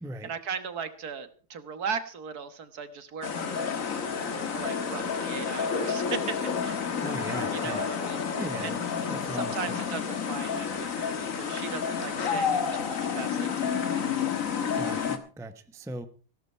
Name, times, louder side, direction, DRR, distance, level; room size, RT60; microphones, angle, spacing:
voice 1, 0.2-3.7 4.4-6.8 7.5-8.2 8.6-8.8 9.3-14.1, right 6 dB, 65° right, 11 dB, 1.8 m, -38 dB
sound 1, 3.2-15.2, left 6 dB, 50° left, 1.7 m, -30 dB
voice 2, 7.0-7.8 8.4-8.8 9.1-9.8 14.7-16.1, right 1 dB, 5° right, 9 dB, 0.6 m, -38 dB
16.0 x 13.0 x 4.4 m, 0.37 s
omnidirectional pair, 1.8 m